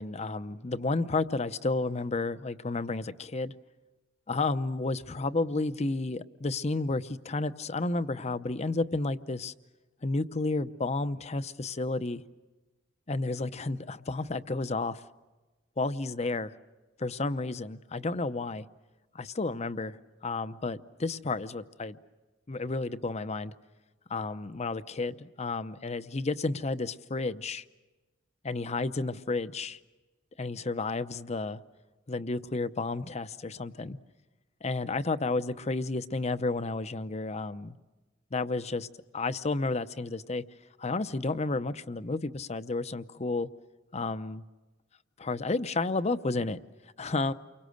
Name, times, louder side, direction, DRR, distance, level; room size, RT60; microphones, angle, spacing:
voice 1, 0.0-3.5 4.3-9.5 10.0-12.2 13.1-15.0 15.8-16.5 17.0-18.7 19.1-22.0 22.5-23.5 24.1-27.6 28.4-29.8 30.4-31.6 32.1-34.0 34.6-37.8 38.3-38.9 39.1-40.4 40.8-43.5 43.9-44.4 45.2-46.6 47.0-47.3, left 3 dB, 35° left, 13 dB, 0.7 m, -31 dB
29.5 x 24.0 x 6.5 m, 1.2 s
head